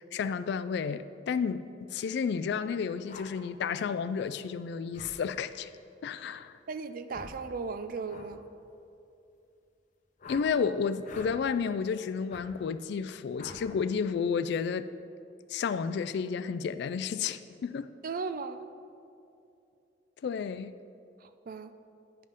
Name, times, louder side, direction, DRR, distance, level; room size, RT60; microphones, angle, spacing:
voice 1, 0.0-5.7 6.0-6.6 10.3-14.9 15.5-17.9 20.2-20.7, left 6 dB, 65° left, 13 dB, 0.3 m, -31 dB
sound 1, 3.1-3.3 4.9-5.2 7.1-7.4 8.1-8.3 10.2-10.5 11.0-11.3 12.3-12.5 13.4-13.6, left 3 dB, 45° left, 0.7 m, -45 dB
voice 2, 6.7-8.4 18.0-18.6 21.2-21.7, right 4 dB, 50° right, 11 dB, 0.4 m, -36 dB
10.5 x 5.4 x 5.1 m, 2.6 s
head